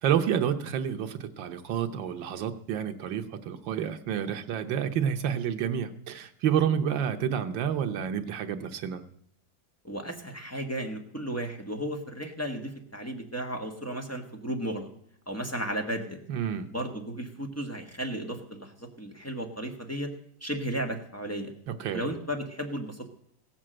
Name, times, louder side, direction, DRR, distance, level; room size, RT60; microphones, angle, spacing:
voice 1, 0.0-9.0 16.3-16.7 21.7-22.0, right 8 dB, 85° right, 7 dB, 1.7 m, -29 dB
voice 2, 9.8-14.9 15.3-16.2 16.7-20.1 20.4-21.5 21.9-23.1, right 1 dB, 10° left, 1 dB, 1.4 m, -34 dB
16.5 x 7.4 x 7.6 m, 0.66 s
omnidirectional pair, 2.0 m